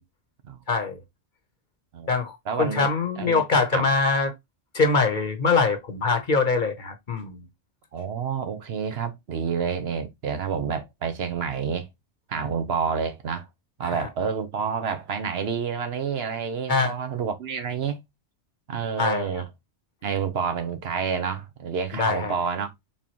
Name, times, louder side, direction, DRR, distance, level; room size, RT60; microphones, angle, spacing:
voice 1, 0.7-1.0 2.1-4.3 4.7-7.4 13.8-14.1 16.7-16.9 19.0-19.4 22.0-22.3, left 4 dB, 45° left, 0.9 m, -23 dB
voice 2, 2.5-2.9 3.2-3.4 3.7-3.9 7.9-11.9 12.3-13.5 13.8-18.0 18.7-19.5 20.0-22.7, right 6 dB, 65° right, 1.0 m, -29 dB
4.5 x 3.5 x 2.9 m
omnidirectional pair, 1.2 m